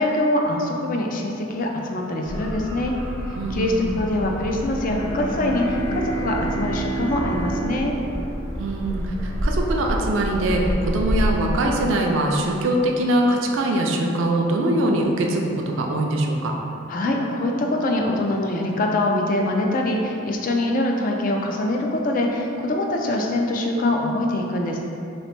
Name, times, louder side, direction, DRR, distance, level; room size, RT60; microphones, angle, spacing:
voice 1, 0.0-2.9 3.5-8.0 16.9-24.8, left 1 dB, 40° left, 1 dB, 0.3 m, -23 dB
sound 1, 2.2-11.6, equal, 85° right, 0.7 m, -29 dB
voice 2, 3.3-4.0 8.6-16.5, right 1 dB, 65° right, 1 dB, 0.4 m, -22 dB
Bowed string instrument, 4.9-9.2, right 2 dB, 80° left, 0.8 m, -30 dB
3.1 x 2.9 x 3.2 m, 2.7 s
head